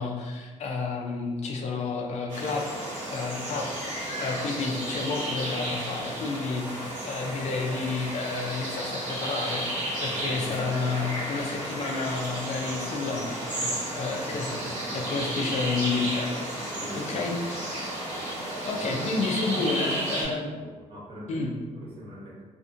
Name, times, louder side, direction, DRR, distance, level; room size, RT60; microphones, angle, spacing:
voice 1, 0.0-2.7 3.1-9.7 10.0-13.3 13.6-17.8 18.7-20.5 21.3-21.5, left 4 dB, 60° left, 0 dB, 0.4 m, -31 dB
sound 1, 2.3-20.2, right 1 dB, 80° right, 1.3 m, -33 dB
voice 2, 10.0-11.0 14.2-15.3 16.7-17.7 18.7-19.1 19.5-22.4, right 1 dB, 40° right, -6 dB, 0.9 m, -42 dB
2.5 x 2.5 x 2.5 m, 1.3 s
cardioid pair, 135°, 13 cm